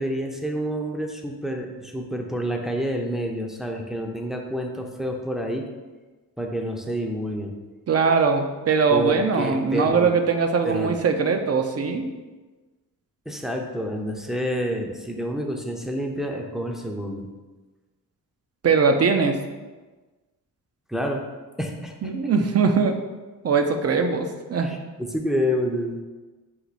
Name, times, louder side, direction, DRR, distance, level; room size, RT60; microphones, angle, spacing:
voice 1, 0.0-5.7 6.4-7.5 8.9-10.2 10.6-11.0 13.3-17.3 20.9-21.2 21.6-22.1 24.5-26.0, equal, ahead, 1 dB, 0.6 m, -28 dB
voice 2, 7.9-12.1 18.6-19.4 22.0-23.0 23.4-24.7, right 5 dB, 40° right, 5 dB, 0.6 m, -21 dB
4.5 x 2.6 x 4.1 m, 1.3 s
supercardioid pair, 60°, 36 cm